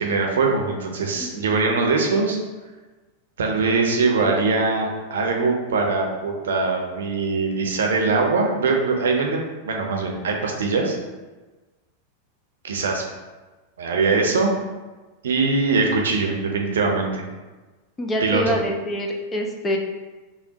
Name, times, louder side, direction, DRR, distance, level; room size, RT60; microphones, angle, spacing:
voice 1, 0.0-2.4 3.4-11.0 12.6-13.0 13.8-14.5 15.2-17.3 18.2-18.6, right 4 dB, 65° right, 1 dB, 0.6 m, -22 dB
voice 2, 18.0-19.8, equal, 20° left, 2 dB, 0.5 m, -25 dB
5.5 x 2.2 x 2.8 m, 1.2 s
figure-of-eight pair, 90°, 0 cm